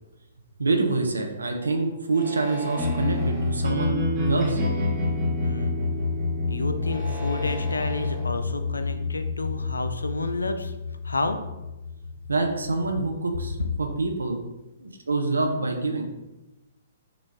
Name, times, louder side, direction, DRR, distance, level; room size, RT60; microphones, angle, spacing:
voice 1, 0.6-4.6 12.3-14.4 14.8-16.0, right 3 dB, 80° right, 3 dB, 0.5 m, -26 dB
sound 1, 2.1-3.5 4.2-4.8 6.7-8.3, equal, 15° left, 1.1 m, -39 dB
sound 2, 2.7-12.8, left 3 dB, 25° right, 0.8 m, -28 dB
voice 2, 5.4-5.8 6.5-10.7 11.0-11.4, left 2 dB, 80° left, 8 dB, 0.3 m, -30 dB
3.9 x 2.3 x 3.2 m, 1.0 s
figure-of-eight pair, 120°, 0 cm